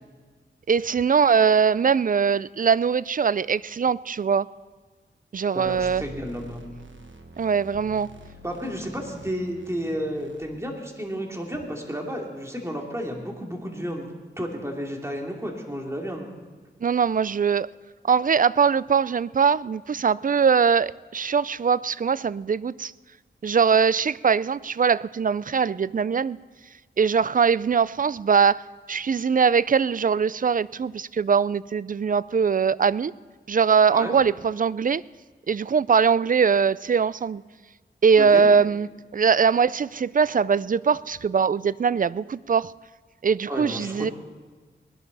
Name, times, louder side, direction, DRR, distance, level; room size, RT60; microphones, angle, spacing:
voice 1, 0.7-4.5 5.3-6.0 7.4-8.1 16.8-17.7 18.0-22.9 23.4-26.4 27.0-28.6 28.9-33.1 33.5-35.0 35.5-37.4 38.0-42.7 43.2-44.1, right 6 dB, 45° right, 20 dB, 0.4 m, -21 dB
voice 2, 5.5-6.6 8.4-14.1 14.4-16.3 33.9-34.1 38.2-38.5 43.5-44.1, equal, 15° right, 0 dB, 3.0 m, -32 dB
sound 1, 5.6-10.4, right 2 dB, 75° right, 1.4 m, -46 dB
20.0 x 11.5 x 4.1 m, 1.4 s
cardioid pair, 45°, 20 cm